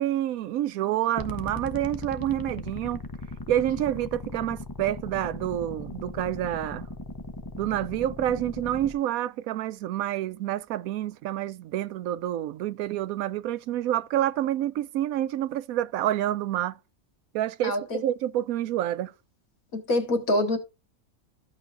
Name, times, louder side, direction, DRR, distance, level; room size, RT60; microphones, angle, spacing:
voice 1, 0.0-3.0 3.5-6.9 7.6-16.8 17.3-19.1, right 12 dB, 90° right, 1.0 m, -28 dB
sound 1, 1.2-8.9, left 2 dB, 25° left, 0.4 m, -38 dB
voice 2, 17.6-18.0 19.7-20.6, left 1 dB, 80° left, 2.2 m, -25 dB
13.5 x 5.8 x 2.5 m
omnidirectional pair, 1.4 m